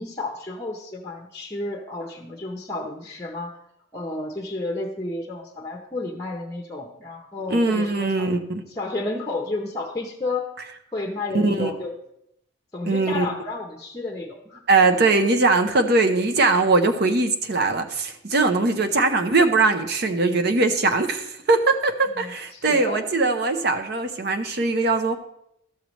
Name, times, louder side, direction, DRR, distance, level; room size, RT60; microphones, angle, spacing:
voice 1, 0.0-3.6 3.9-8.3 8.7-10.5 10.9-11.9 12.7-14.6 22.1-23.1, left 2 dB, 15° left, 1 dB, 0.7 m, -31 dB
voice 2, 7.5-8.6 11.3-11.7 12.9-13.3 14.7-25.2, right 3 dB, 50° right, 7 dB, 0.7 m, -21 dB
13.0 x 6.6 x 3.1 m, 0.78 s
head